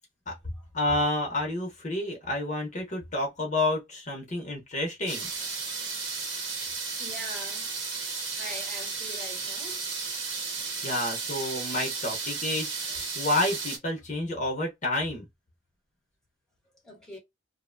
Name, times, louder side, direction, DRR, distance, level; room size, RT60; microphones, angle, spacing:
voice 1, 0.7-5.3 10.5-15.3, left 1 dB, 40° left, 0.8 m, -30 dB
voice 2, 5.0-5.6 7.0-7.7 8.0-9.8 12.9-13.0 16.7-17.2, equal, 5° left, 1.0 m, -44 dB
sound 1, 5.1-13.8, right 4 dB, 90° right, 1.0 m, -34 dB
2.7 x 2.1 x 2.5 m
head